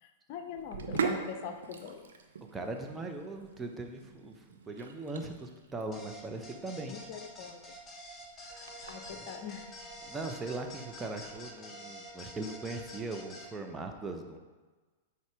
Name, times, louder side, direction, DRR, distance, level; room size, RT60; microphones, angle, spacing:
voice 1, 0.0-2.0 6.9-7.8 8.9-9.7, left 7 dB, 50° left, 7 dB, 0.6 m, -42 dB
Sink (filling or washing), 0.6-11.4, right 6 dB, 80° right, 0.6 m, -42 dB
voice 2, 2.5-6.9 8.4-8.7 9.1-9.3 10.0-14.4, right 2 dB, 15° right, 3 dB, 0.7 m, -40 dB
sound 1, 5.9-13.5, equal, 15° left, 1.1 m, -48 dB
Wind instrument woodwind instrument, 8.5-13.3, left 2 dB, 40° right, 0.9 m, -55 dB
6.5 x 4.1 x 4.7 m, 1.3 s
hypercardioid pair, 110°, 0 cm